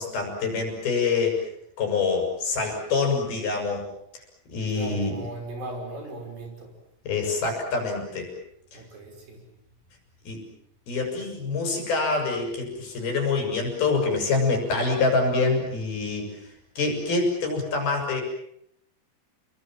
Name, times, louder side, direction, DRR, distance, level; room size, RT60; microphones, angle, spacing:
voice 1, 0.0-1.4 1.8-3.8 4.5-5.1 7.1-8.3 8.7-8.8 10.2-10.4 10.9-18.2, left 4 dB, 75° left, 2 dB, 8.3 m, -26 dB
voice 2, 4.7-6.7 8.7-9.4, right 2 dB, 65° right, 2 dB, 7.6 m, -37 dB
29.5 x 22.0 x 7.6 m, 0.76 s
omnidirectional pair, 4.5 m